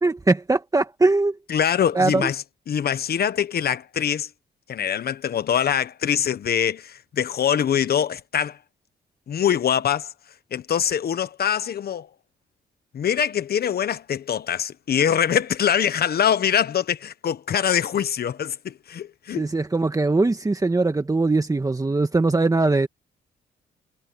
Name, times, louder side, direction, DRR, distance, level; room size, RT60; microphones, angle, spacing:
voice 1, 0.0-1.4 1.9-2.3 19.3-22.9, right 3 dB, 20° right, 1.7 m, -21 dB
voice 2, 1.5-4.3 4.7-8.6 9.3-10.1 10.5-12.1 12.9-19.4, left 9 dB, 60° left, 1.3 m, -23 dB
cardioid pair, 80°, 18 cm